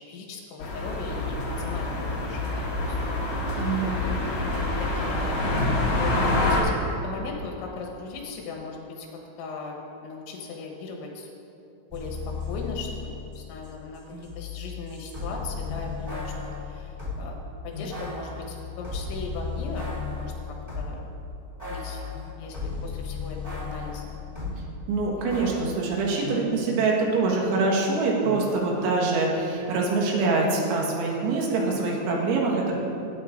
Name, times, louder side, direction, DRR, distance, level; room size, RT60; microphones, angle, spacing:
voice 1, 0.0-3.0 3.5-4.3 4.8-11.3 11.9-17.4 17.6-21.1 21.7-22.0 22.4-24.2 25.1-25.3 32.5-32.8, left 4 dB, 80° left, 0 dB, 3.5 m, -38 dB
sound 1, 0.6-6.6, left 2 dB, 60° left, 1.6 m, -26 dB
voice 2, 3.6-4.1 24.9-32.8, right 3 dB, 80° right, -2 dB, 3.9 m, -24 dB
sound 2, 11.9-17.3 17.9-21.1 21.6-24.6 25.3-25.6, left 4 dB, 25° right, 0.7 m, -35 dB
sound 3, 14.1-29.8, left 3 dB, 45° left, 3.0 m, -45 dB
18.5 x 9.4 x 2.6 m, 2.7 s
omnidirectional pair, 5.4 m